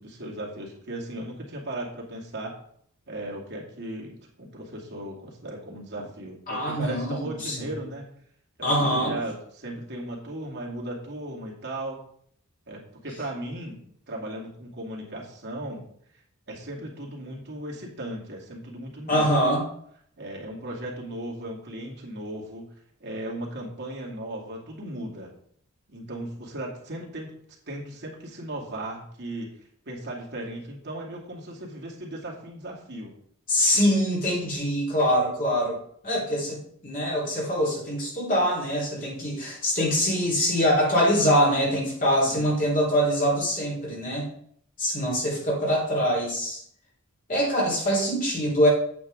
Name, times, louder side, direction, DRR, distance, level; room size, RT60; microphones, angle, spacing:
voice 1, 0.0-2.6 3.1-8.0 8.6-12.0 12.7-13.8 14.1-15.8 16.1-16.2 16.5-19.5 20.2-22.7 23.0-25.3 25.9-27.4 27.7-29.5 29.9-33.1 42.2-42.4, right 1 dB, 55° right, -3 dB, 2.4 m, -36 dB
voice 2, 6.5-7.6 8.6-9.1 19.1-19.6 33.5-35.8 36.0-44.3 44.8-46.6 47.3-48.7, equal, 40° left, -5 dB, 3.8 m, -24 dB
8.6 x 8.5 x 3.7 m, 0.65 s
head